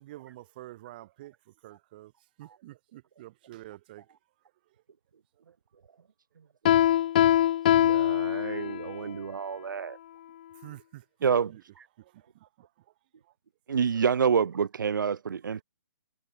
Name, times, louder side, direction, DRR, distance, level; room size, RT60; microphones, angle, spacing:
voice 1, 0.0-2.1 2.4-4.1 7.4-7.5 10.5-11.6 12.0-12.7 13.2-13.3, right 16 dB, 25° right, 6.5 m, -48 dB
Piano, 6.6-8.9, left 12 dB, 25° left, 0.5 m, -23 dB
voice 2, 7.8-10.0, right 6 dB, 85° right, 0.7 m, -37 dB
voice 3, 11.2-11.5 13.7-15.6, right 6 dB, 65° right, 1.1 m, -25 dB
hypercardioid pair, 175°, 11 cm